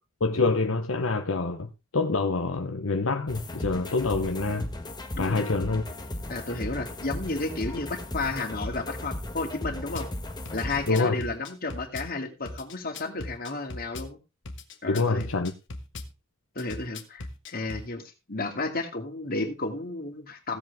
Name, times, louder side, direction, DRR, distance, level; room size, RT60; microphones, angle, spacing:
voice 1, 0.2-4.7 5.2-5.8 10.9-11.2 14.9-15.5, left 3 dB, 80° left, 1.0 m, -26 dB
sound 1, 3.3-10.9, left 1 dB, 20° left, 1.4 m, -36 dB
voice 2, 5.2-5.5 6.3-10.1 10.5-14.2 14.8-15.3 16.6-18.0 18.3-20.6, left 3 dB, 45° left, 2.5 m, -32 dB
Drum kit / Bass drum, 9.9-10.1 10.4-12.1 12.4-14.1 14.4-16.1 16.6-17.9, left 2 dB, 60° left, 1.5 m, -38 dB
16.0 x 7.8 x 3.5 m
head